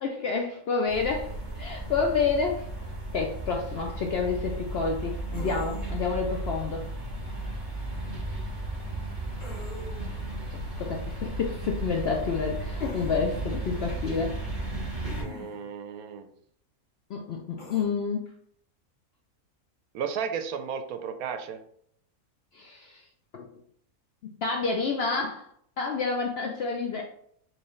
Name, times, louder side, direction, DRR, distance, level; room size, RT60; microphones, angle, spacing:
voice 1, 0.0-2.7 3.1-6.9 10.5-14.4 17.1-18.2 22.5-23.0 23.3-23.5 24.4-25.5 25.8-27.0, left 5 dB, 70° left, 1 dB, 0.6 m, -29 dB
sound 1, 0.9-15.2, right 2 dB, 35° right, 1.4 m, -35 dB
sound 2, 5.3-6.1 9.4-10.2 12.8-13.2 15.0-15.7 17.6-17.8, left 2 dB, 40° left, 0.9 m, -43 dB
voice 2, 15.2-16.3 19.9-21.6, right 7 dB, 80° right, 8 dB, 1.0 m, -34 dB
4.5 x 3.1 x 3.1 m, 0.66 s
omnidirectional pair, 1.5 m